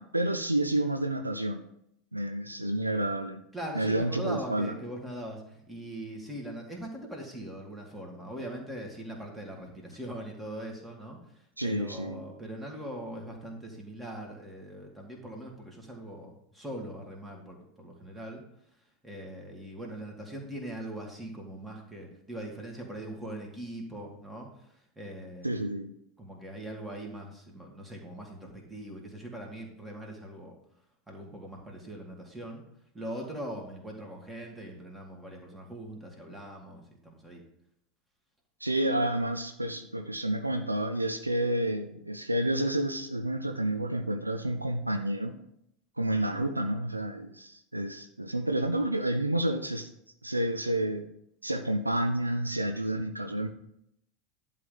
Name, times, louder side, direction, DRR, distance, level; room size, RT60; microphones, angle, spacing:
voice 1, 0.0-1.7 2.1-3.4 3.7-4.7 11.6-12.2 25.4-25.9 38.6-45.3 46.0-49.9 50.2-51.1 51.4-53.5, right 1 dB, 85° right, 7 dB, 0.6 m, -30 dB
voice 2, 3.5-18.4 19.0-25.5 26.2-30.5 31.1-32.6 32.9-37.4, right 1 dB, 10° right, 0 dB, 2.5 m, -41 dB
11.0 x 3.9 x 7.1 m, 0.74 s
figure-of-eight pair, 80°, 0 cm